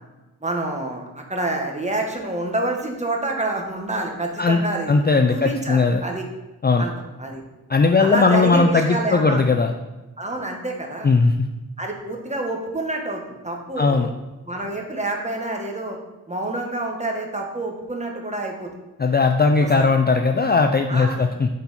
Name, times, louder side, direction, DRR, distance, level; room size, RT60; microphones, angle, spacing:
voice 1, 0.4-4.9 5.3-6.2 6.8-6.9 7.2-7.4 8.0-9.4 10.2-11.1 11.8-14.1 14.4-16.0 16.3-18.7 19.6-19.9 20.9-21.3, right 2 dB, 20° right, 1 dB, 1.3 m, -27 dB
voice 2, 4.9-6.0 6.6-6.8 7.7-9.7 11.0-11.4 13.8-14.1 19.0-21.5, left 4 dB, 25° left, 5 dB, 0.4 m, -18 dB
8.4 x 4.3 x 4.2 m, 1.1 s
wide cardioid pair, 80°, 38 cm